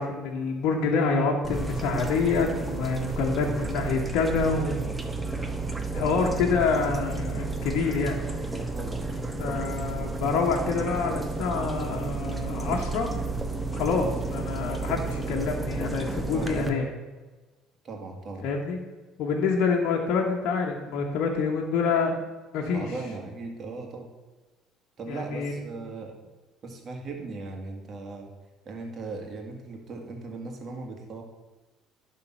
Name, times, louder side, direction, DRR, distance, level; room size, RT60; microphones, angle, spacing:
voice 1, 0.0-5.0 5.9-8.5 9.4-13.2 13.7-16.9 18.4-18.8 19.2-22.2 22.5-22.9 25.1-25.5, left 4 dB, 65° left, 0 dB, 1.1 m, -27 dB
sound 1, 1.4-16.7, right 3 dB, 15° right, 1.0 m, -32 dB
voice 2, 5.9-6.2 8.5-9.2 14.0-14.2 16.3-16.6 17.8-18.5 22.7-24.1 25.0-26.1 26.6-28.3 28.7-31.2, right 3 dB, 45° right, 2 dB, 1.8 m, -38 dB
10.5 x 3.7 x 5.7 m, 1.2 s
hypercardioid pair, 70°, 0 cm